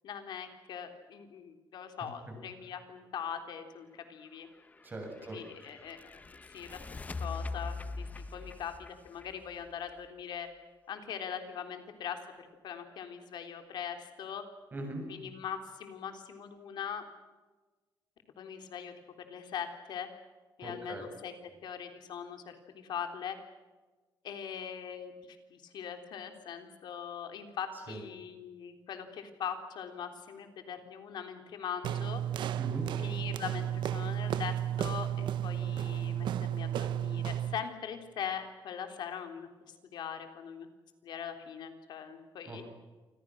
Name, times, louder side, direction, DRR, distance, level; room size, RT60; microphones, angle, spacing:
voice 1, 0.0-4.5 5.2-6.0 6.5-8.1 8.3-10.5 10.9-14.4 15.1-17.0 18.4-18.9 19.3-20.1 20.6-21.3 21.6-23.4 24.2-32.2 33.0-39.5 39.9-40.7 41.0-42.6, left 8 dB, 65° left, 6 dB, 3.6 m, -41 dB
sound 1, 4.5-10.3, left 3 dB, 20° left, 0.9 m, -42 dB
voice 2, 4.8-5.4 14.7-15.0 20.6-21.1 27.9-28.0 32.6-32.9 42.5-42.6, right 1 dB, 25° right, 2 dB, 7.7 m, -40 dB
sound 2, 31.8-37.6, right 10 dB, 80° right, 1.1 m, -33 dB
28.0 x 26.5 x 6.4 m, 1.3 s
cardioid pair, 170°, 8 cm